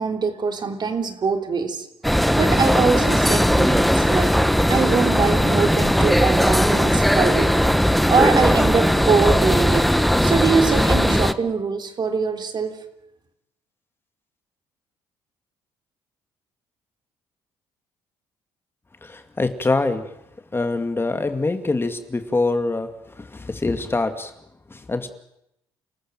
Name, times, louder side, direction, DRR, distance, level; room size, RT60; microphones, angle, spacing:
voice 1, 0.0-1.9 2.4-4.4 4.7-7.5 7.8-12.8, right 5 dB, 45° right, 5 dB, 3.3 m, -23 dB
sound 1, 2.0-11.3, equal, ahead, 1.3 m, -18 dB
voice 2, 19.0-20.1 20.5-22.9 23.2-24.3 24.7-25.1, left 3 dB, 20° left, 8 dB, 2.3 m, -24 dB
30.0 x 14.0 x 9.1 m, 0.80 s
supercardioid pair, 70°, 11 cm